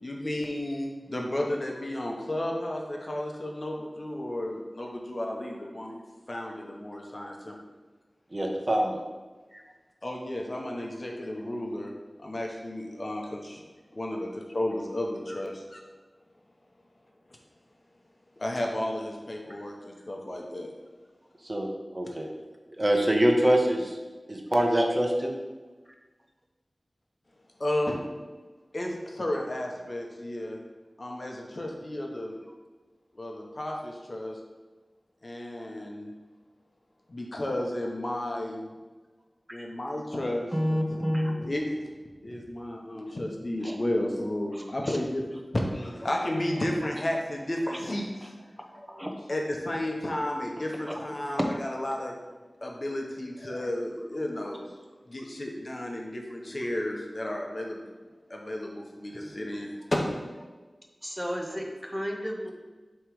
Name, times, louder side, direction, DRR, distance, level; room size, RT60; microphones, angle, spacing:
voice 1, 0.0-7.5 10.0-11.9 12.2-13.6 13.9-15.8 18.4-20.7 27.6-28.0 28.7-30.6 31.0-32.4 33.1-34.4 35.2-36.1 37.1-38.7 39.5-41.8 42.2-45.2 45.5-48.0 48.9-52.2 52.6-54.7 55.1-57.8 58.3-60.4, left 1 dB, 50° left, 0 dB, 1.0 m, -33 dB
voice 2, 8.3-9.0 21.4-22.3 22.8-24.0 24.3-25.3, right 1 dB, 35° right, 1 dB, 1.0 m, -24 dB
voice 3, 40.5-41.4 43.1-43.2 43.6-43.8 44.5-45.0 47.7-47.8 48.9-49.1 51.4-51.5 61.0-62.5, equal, 10° right, 2 dB, 0.8 m, -31 dB
7.5 x 3.2 x 4.8 m, 1.3 s
wide cardioid pair, 50°, 0 cm